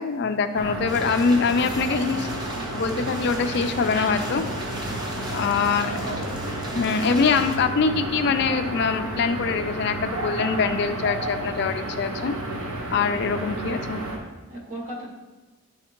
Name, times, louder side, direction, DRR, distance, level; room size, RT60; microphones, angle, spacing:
voice 1, 0.0-2.3 2.7-4.4 5.3-5.9 6.7-12.3 12.9-14.0, left 5 dB, 50° left, 8 dB, 0.3 m, -23 dB
sound 1, 0.5-14.2, right 2 dB, 90° right, 0.9 m, -31 dB
sound 2, 0.9-7.6, equal, 20° right, 0.6 m, -37 dB
voice 2, 5.7-6.8 14.5-15.1, right 1 dB, 65° right, -4 dB, 1.7 m, -36 dB
10.0 x 3.5 x 2.9 m, 1.2 s
head